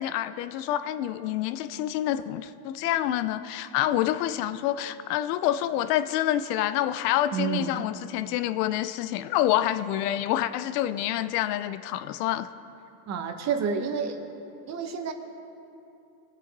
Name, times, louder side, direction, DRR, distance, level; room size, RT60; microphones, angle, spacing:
voice 1, 0.0-12.5, left 12 dB, 70° left, 12 dB, 0.7 m, -27 dB
voice 2, 7.3-7.9 13.1-14.2 14.7-15.1, right 6 dB, 35° right, 6 dB, 1.1 m, -29 dB
22.5 x 8.2 x 4.0 m, 2.9 s
supercardioid pair, 130°, 49 cm